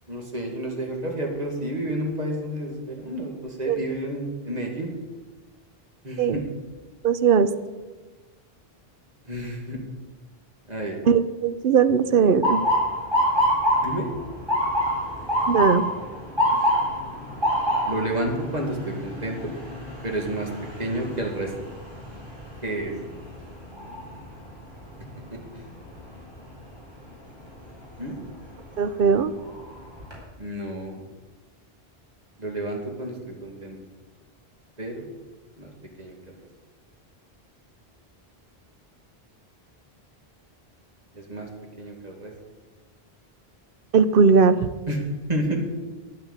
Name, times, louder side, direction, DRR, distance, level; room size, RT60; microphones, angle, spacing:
voice 1, 0.1-4.9 6.0-6.5 9.2-9.8 10.7-11.0 13.8-14.1 16.5-16.8 17.8-19.5 20.0-20.5 20.8-21.5 22.6-23.0 25.3-25.6 28.0-28.2 30.4-31.0 32.4-33.8 34.8-35.1 35.6-35.7 36.0-36.3 41.1-41.5 41.8-42.3 44.9-45.6, right 1 dB, 40° right, 1 dB, 2.2 m, -30 dB
voice 2, 7.0-7.5 11.1-12.7 15.5-15.9 28.8-29.3 43.9-44.7, right 6 dB, 60° right, 13 dB, 0.8 m, -19 dB
Motor vehicle (road) / Siren, 12.4-24.3 24.8-25.2 26.0-26.3 28.2-28.4 28.9-29.0 29.4-30.1, equal, 25° right, 4.3 m, -26 dB
9.9 x 9.2 x 8.1 m, 1.3 s
omnidirectional pair, 1.0 m